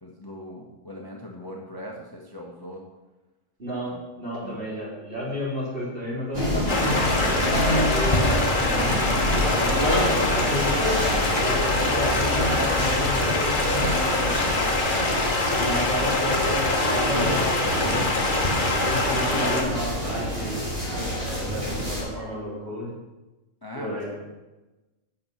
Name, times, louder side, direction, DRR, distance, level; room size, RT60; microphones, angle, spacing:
voice 1, 0.0-2.8 3.9-4.0 4.4-4.6 11.8-12.6 15.5-15.8 19.1-19.6 23.6-24.2, left 1 dB, 20° left, -1 dB, 1.0 m, -38 dB
voice 2, 3.6-7.2 7.5-9.2 9.6-10.7 11.4-15.0 15.6-17.9 18.9-20.5 20.9-22.9 23.7-24.2, equal, 45° right, -8 dB, 4.2 m, -31 dB
sound 1, 6.3-22.0, equal, 25° right, 2.7 m, -27 dB
Stream, 6.7-19.6, left 2 dB, 40° left, 1.3 m, -25 dB
8.9 x 6.6 x 5.8 m, 1.1 s
omnidirectional pair, 1.3 m